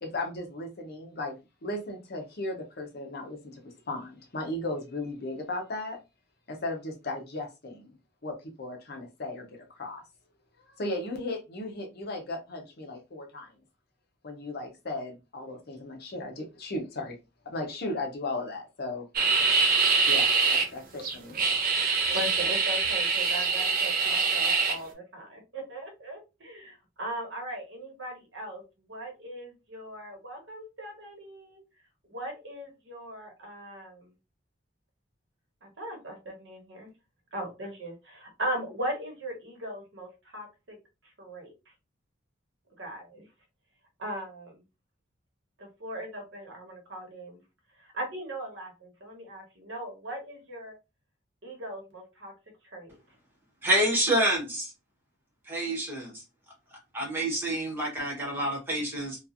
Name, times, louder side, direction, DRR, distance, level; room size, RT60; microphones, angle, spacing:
voice 1, 0.0-1.3 1.6-6.0 6.5-7.9 8.2-10.0 10.6-13.5 14.2-17.2 17.4-19.1 20.1-21.4, left 2 dB, 55° left, 0.8 m, -36 dB
sound 1, 19.1-20.6 21.0-24.7, right 4 dB, 50° right, 0.7 m, -24 dB
voice 2, 21.7-28.6 28.9-31.6 32.1-34.1 35.6-36.9 37.3-40.8 41.0-41.7 42.8-43.2 44.0-44.6 45.6-47.4 47.7-50.7 51.4-52.3 52.6-53.0, right 1 dB, 70° right, 1.2 m, -39 dB
voice 3, 53.6-54.7 55.5-56.2 56.9-59.2, right 1 dB, 10° right, 1.2 m, -27 dB
3.0 x 2.3 x 2.5 m
head